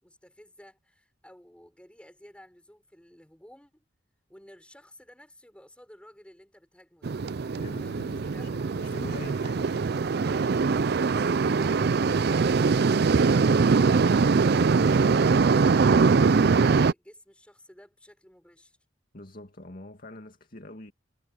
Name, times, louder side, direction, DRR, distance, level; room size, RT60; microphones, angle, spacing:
voice 1, 0.0-3.8 4.3-7.2 7.8-9.0 10.2-10.7 11.5-14.9 15.4-18.8, left 1 dB, 5° left, 5.8 m, -53 dB
sound 1, 7.0-16.9, right 4 dB, 55° right, 0.4 m, -22 dB
voice 2, 7.5-9.9 11.4-11.6 19.1-20.9, left 1 dB, 45° left, 2.3 m, -44 dB
head